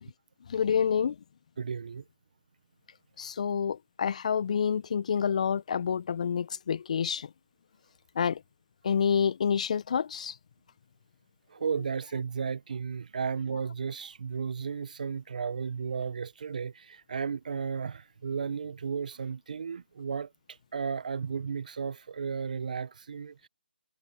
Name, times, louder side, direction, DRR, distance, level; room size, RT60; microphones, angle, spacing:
voice 1, 0.5-1.1 3.2-7.3 8.2-8.4 8.8-10.3, left 7 dB, 40° left, 1.4 m, -28 dB
voice 2, 1.6-2.0 11.5-20.3 20.7-23.5, right 6 dB, 50° right, 1.3 m, -34 dB
figure-of-eight pair, 155°, 6 cm